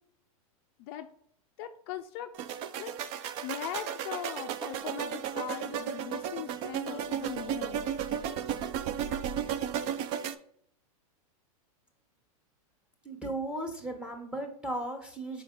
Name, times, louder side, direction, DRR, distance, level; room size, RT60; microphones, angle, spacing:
voice 1, 1.6-2.3 2.8-2.9 3.4-7.9, left 11 dB, 40° left, 6 dB, 0.4 m, -40 dB
sound 1, 2.3-10.3, right 9 dB, 35° right, 0.4 m, -34 dB
voice 2, 13.0-15.4, right 1 dB, 5° right, 4 dB, 1.0 m, -36 dB
5.6 x 4.5 x 3.8 m, 0.67 s
supercardioid pair, 140°, 19 cm